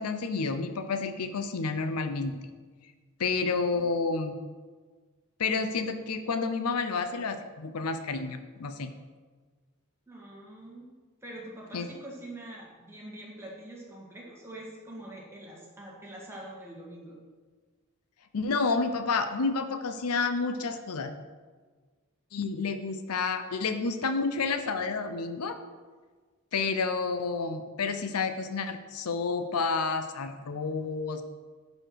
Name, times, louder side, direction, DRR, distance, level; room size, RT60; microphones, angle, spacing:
voice 1, 0.0-2.4 3.2-4.3 5.4-8.9 11.7-11.9 18.3-21.1 22.3-25.6 26.5-31.2, left 4 dB, 80° left, 9 dB, 0.6 m, -30 dB
voice 2, 10.1-10.9 11.2-17.2, right 1 dB, 10° right, -3 dB, 1.6 m, -44 dB
11.5 x 4.3 x 4.6 m, 1.4 s
head